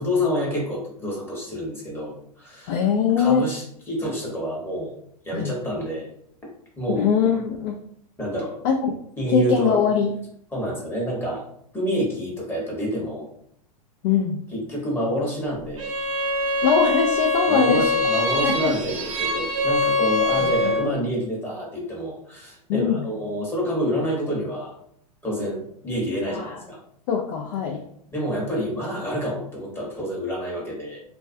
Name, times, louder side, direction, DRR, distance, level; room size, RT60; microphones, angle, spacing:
voice 1, 0.0-2.8 3.1-4.9 5.2-6.1 6.8-7.1 8.2-8.6 9.2-9.8 10.5-11.4 11.7-13.3 14.5-15.9 17.5-24.7 25.2-26.8 28.1-31.0, equal, 10° left, -4 dB, 0.9 m, -28 dB
voice 2, 2.7-3.5 5.3-5.5 6.9-7.8 8.6-8.9 9.3-10.1 14.0-14.4 16.6-17.8 18.4-18.7 20.4-21.0 22.7-23.1 26.3-26.6 27.1-27.8, left 6 dB, 50° left, 1 dB, 0.4 m, -22 dB
Bowed string instrument, 15.8-20.9, left 2 dB, 55° right, 0.6 m, -23 dB
2.3 x 2.2 x 2.5 m, 0.67 s
hypercardioid pair, 105°, 20 cm